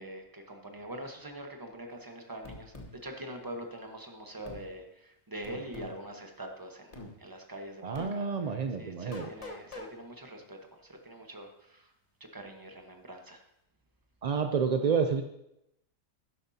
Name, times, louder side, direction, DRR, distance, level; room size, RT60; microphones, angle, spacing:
voice 1, 0.0-2.7 3.0-8.5 8.8-11.9 12.2-13.4, right 1 dB, 15° right, 3 dB, 1.1 m, -44 dB
sound 1, 2.4-2.9 4.4-4.6 5.4-6.0 6.9-7.1 7.9-8.1 9.1-9.9, left 2 dB, 30° left, 1.1 m, -43 dB
voice 2, 7.8-9.3 14.2-15.2, right 6 dB, 60° right, 6 dB, 0.4 m, -29 dB
12.0 x 10.5 x 2.8 m, 0.81 s
omnidirectional pair, 1.4 m